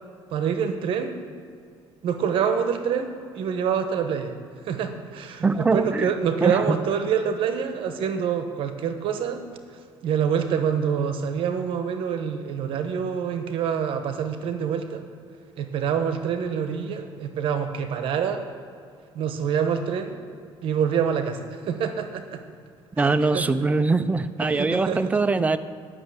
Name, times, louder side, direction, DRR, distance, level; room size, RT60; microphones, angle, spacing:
voice 1, 0.3-1.1 2.0-4.4 4.6-9.4 10.0-15.0 15.6-18.5 19.1-20.2 20.6-22.4 23.0-23.4 24.4-25.2, right 7 dB, 65° right, 7 dB, 1.0 m, -26 dB
voice 2, 5.4-6.1 6.4-6.8 23.0-25.6, right 3 dB, 15° right, 12 dB, 0.5 m, -22 dB
11.0 x 6.3 x 7.9 m, 2.3 s
cardioid pair, 125°, 10 cm